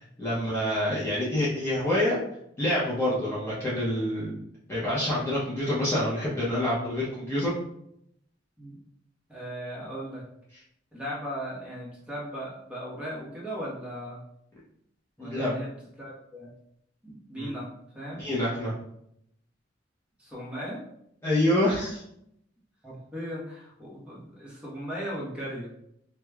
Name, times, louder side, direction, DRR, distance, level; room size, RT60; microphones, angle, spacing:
voice 1, 0.2-2.2 2.6-4.4 4.7-7.5 15.2-15.6 17.3-17.5 18.2-18.7 21.2-22.0, left 1 dB, 15° left, -9 dB, 0.7 m, -27 dB
voice 2, 9.3-10.2 10.9-14.2 15.2-15.7 16.0-16.5 17.0-17.7 17.9-18.2 20.2-20.8 22.8-25.7, equal, 5° right, -6 dB, 1.0 m, -37 dB
4.6 x 2.2 x 2.3 m, 0.74 s
head